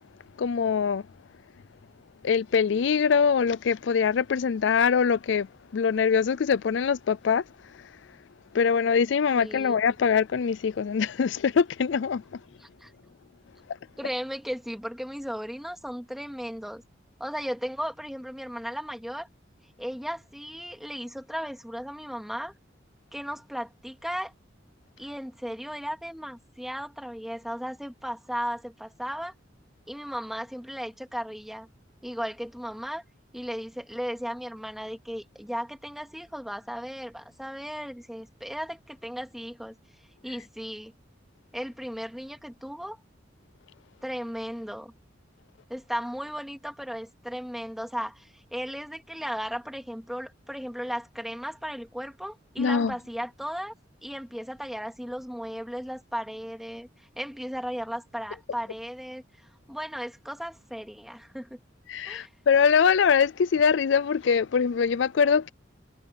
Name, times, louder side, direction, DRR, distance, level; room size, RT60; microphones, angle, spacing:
voice 1, 0.4-1.0 2.2-5.5 5.7-7.4 8.5-12.4 52.6-52.9 61.9-65.5, left 6 dB, 70° left, 0.4 m, -23 dB
voice 2, 9.3-9.8 12.6-12.9 14.0-16.8 17.2-19.3 19.8-22.5 23.1-24.3 25.0-29.3 29.9-31.7 32.0-33.0 33.3-39.8 40.2-40.9 41.5-43.0 44.0-44.9 45.7-53.7 54.0-59.2 59.7-61.6 62.0-62.3, equal, ahead, 2.6 m, -36 dB
head